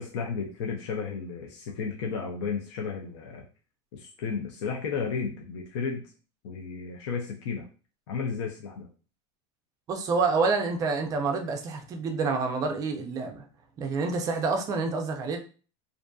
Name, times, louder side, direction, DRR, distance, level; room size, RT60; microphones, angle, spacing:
voice 1, 0.0-3.5 3.9-6.0 6.4-7.7 8.1-8.9, left 5 dB, 80° left, 1 dB, 0.6 m, -33 dB
voice 2, 9.9-13.4 13.8-15.4, right 4 dB, 25° right, 4 dB, 0.4 m, -28 dB
2.5 x 2.5 x 2.2 m, 0.37 s
supercardioid pair, 160°, 15 cm